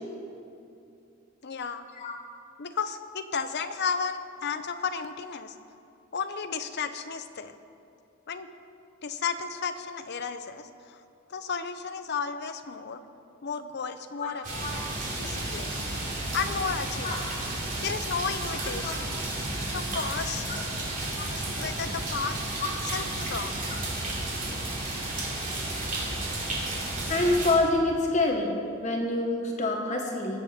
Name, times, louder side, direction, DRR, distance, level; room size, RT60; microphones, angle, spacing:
voice 1, 1.4-1.9 2.6-5.6 6.1-7.5 8.3-8.5 9.0-11.0 11.3-13.0 13.4-14.5 15.2-15.7 16.3-17.3 17.8-19.1 19.7-20.5 21.2-22.4 22.8-23.5, left 5 dB, 55° left, 9 dB, 0.7 m, -33 dB
voice 2, 14.2-14.8 17.0-17.5 18.6-19.0 20.5-20.6 22.6-22.7 27.0-30.4, left 2 dB, 35° left, 1 dB, 1.0 m, -27 dB
sound 1, 14.4-27.5, right 2 dB, 40° right, 2.8 m, -32 dB
20.5 x 7.6 x 4.3 m, 2.6 s
head